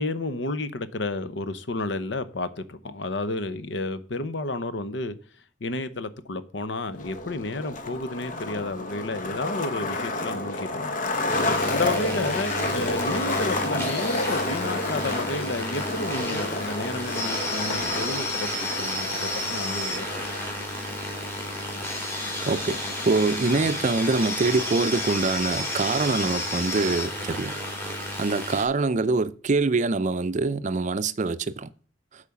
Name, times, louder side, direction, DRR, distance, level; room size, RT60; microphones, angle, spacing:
voice 1, 0.0-5.2 5.6-10.9 11.7-20.3, left 2 dB, 75° left, 0.8 m, -31 dB
Skateboard, 6.9-23.9, left 2 dB, 45° left, 0.9 m, -31 dB
sound 1, 11.1-28.6, left 1 dB, 15° left, 3.1 m, -31 dB
voice 2, 22.5-22.8 23.0-27.5 28.0-31.7, right 3 dB, 40° right, 0.5 m, -24 dB
8.5 x 5.0 x 7.0 m
head